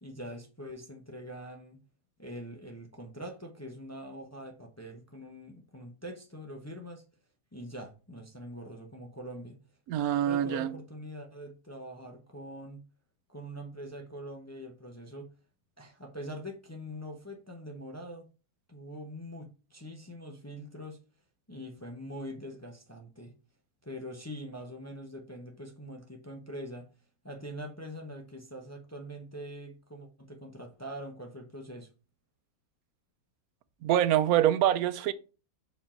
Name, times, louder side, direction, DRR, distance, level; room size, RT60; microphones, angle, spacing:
voice 1, 0.0-1.8 2.2-7.0 7.5-9.6 10.2-12.8 13.3-15.3 15.8-18.3 18.7-21.0 21.5-23.3 23.8-26.9 27.2-31.9, equal, 15° left, 0.7 m, -43 dB
voice 2, 9.9-10.7 33.8-35.1, right 11 dB, 85° right, 1.1 m, -25 dB
5.6 x 4.7 x 4.4 m
omnidirectional pair, 1.5 m